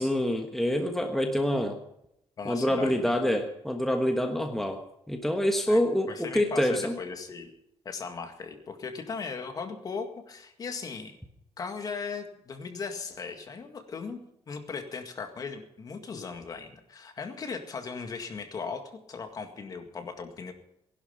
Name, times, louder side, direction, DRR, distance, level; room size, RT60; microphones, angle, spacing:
voice 1, 0.0-1.8 2.4-4.8 5.1-6.9, left 1 dB, ahead, 3 dB, 1.3 m, -26 dB
voice 2, 2.4-3.4 5.7-5.8 6.1-7.5 7.9-11.2 11.6-14.2 14.5-20.5, left 5 dB, 40° left, 5 dB, 2.0 m, -38 dB
19.5 x 11.5 x 5.7 m, 0.81 s
cardioid pair, 150°, 10 cm